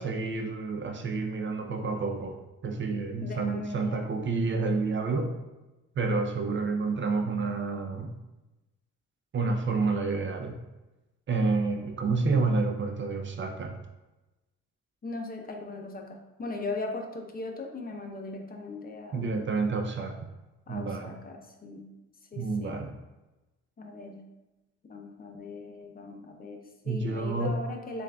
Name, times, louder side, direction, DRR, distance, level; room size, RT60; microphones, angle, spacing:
voice 1, 0.0-5.3 6.0-8.1 9.3-10.6 11.3-13.8 19.1-20.2 20.7-21.2 22.4-22.9 26.9-27.6, right 3 dB, 40° right, 4 dB, 0.5 m, -29 dB
voice 2, 3.2-4.1 15.0-19.3 20.7-21.9 22.3-22.8 23.8-24.2 24.9-28.0, left 2 dB, 30° left, 3 dB, 0.7 m, -39 dB
6.9 x 2.5 x 2.2 m, 1.0 s
cardioid pair, 90°, 30 cm